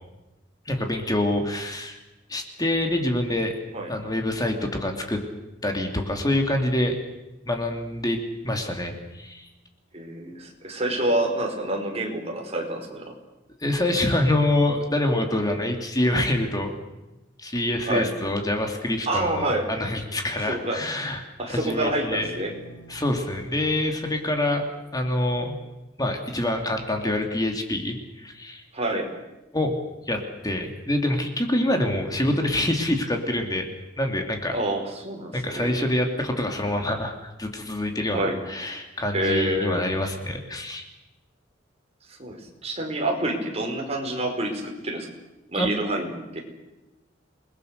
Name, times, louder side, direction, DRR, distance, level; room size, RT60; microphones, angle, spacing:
voice 1, 0.7-2.0 2.3-3.5 3.9-5.2 5.6-6.9 7.5-8.2 8.4-9.5 13.6-16.7 17.4-21.2 21.5-22.3 22.9-24.7 24.9-25.6 26.0-28.6 29.5-29.8 30.1-33.7 34.0-34.6 35.3-37.1 37.4-40.9 45.5-45.7, left 1 dB, 20° left, 3 dB, 2.7 m, -26 dB
voice 2, 9.9-13.1 17.9-18.1 19.1-19.7 20.5-20.8 21.4-22.5 28.7-29.1 34.5-35.7 38.1-38.4 39.1-39.9 42.2-45.1 45.5-46.4, right 1 dB, 35° right, 1 dB, 5.0 m, -27 dB
sound 1, 21.9-24.8, equal, 80° left, 5.7 m, -46 dB
28.5 x 20.5 x 6.7 m, 1.0 s
head